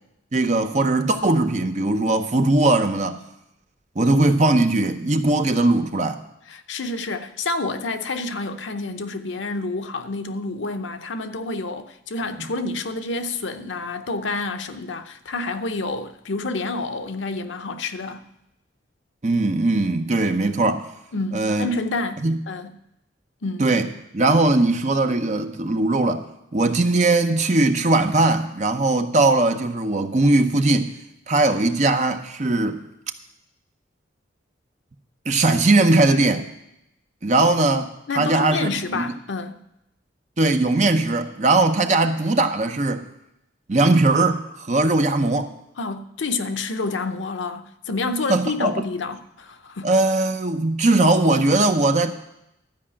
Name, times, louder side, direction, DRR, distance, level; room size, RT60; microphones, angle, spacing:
voice 1, 0.3-3.2 4.0-6.2 19.2-20.9 21.3-21.7 22.2-22.4 23.6-23.9 24.1-26.2 26.5-30.9 31.3-32.8 35.3-36.5 37.2-37.9 38.1-39.0 40.4-43.0 43.7-45.5 48.3-48.9 49.8-52.1, right 2 dB, 40° right, 0.7 m, -19 dB
voice 2, 6.5-18.2 21.1-22.8 23.4-23.7 38.1-39.6 45.8-49.9, left 3 dB, 75° left, 0.7 m, -28 dB
12.5 x 4.9 x 8.6 m
head